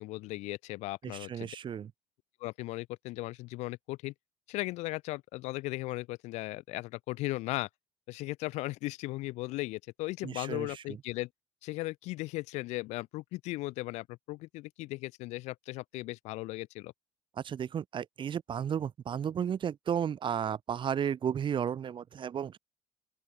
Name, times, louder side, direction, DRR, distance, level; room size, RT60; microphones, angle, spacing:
voice 1, 0.0-1.5 2.4-4.1 4.5-7.7 8.1-11.3 11.6-16.9, left 20 dB, 70° left, 2.6 m, -37 dB
voice 2, 1.1-1.9 10.2-10.7 17.4-22.6, right 8 dB, 45° right, 1.0 m, -33 dB
open air
hypercardioid pair, 60°, 12 cm